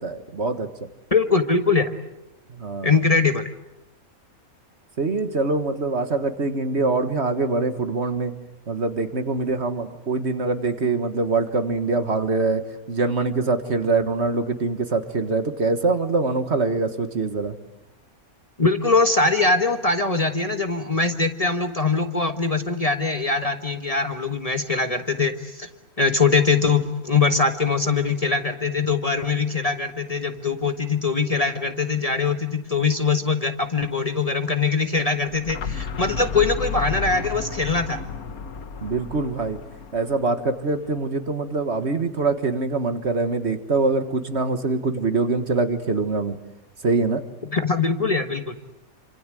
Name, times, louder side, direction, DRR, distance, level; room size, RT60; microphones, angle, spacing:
voice 1, 0.0-0.7 2.5-2.9 5.0-8.3 8.7-17.6 38.8-39.6 39.9-46.4 46.8-47.2, right 3 dB, 50° right, 9 dB, 1.8 m, -24 dB
voice 2, 1.1-2.0 2.8-3.5 18.6-25.7 26.0-38.0 47.4-48.6, left 4 dB, 25° left, 7 dB, 1.4 m, -22 dB
sound 1, 35.2-41.0, left 6 dB, 85° left, 1.8 m, -33 dB
28.0 x 26.0 x 7.7 m, 0.84 s
omnidirectional pair, 1.5 m